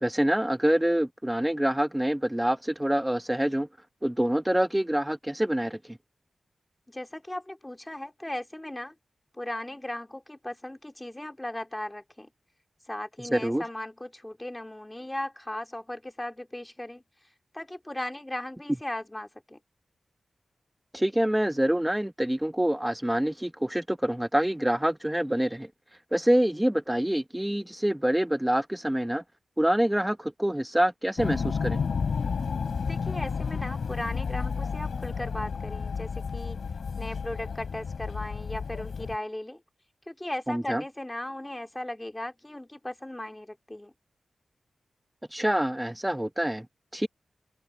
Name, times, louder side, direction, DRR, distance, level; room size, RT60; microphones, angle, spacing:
voice 1, 0.0-3.7 4.0-6.0 13.3-13.6 20.9-25.7 26.1-29.2 29.6-31.8 40.5-40.8 45.3-46.7 46.9-47.1, right 1 dB, 5° right, 0.8 m, -26 dB
voice 2, 6.9-8.9 9.3-12.3 12.9-17.0 17.5-19.6 32.8-36.7 37.0-39.6 40.1-43.9, left 1 dB, 10° left, 2.5 m, -37 dB
sound 1, 31.2-39.2, left 5 dB, 75° left, 3.5 m, -31 dB
open air
wide cardioid pair, 115°, 0 cm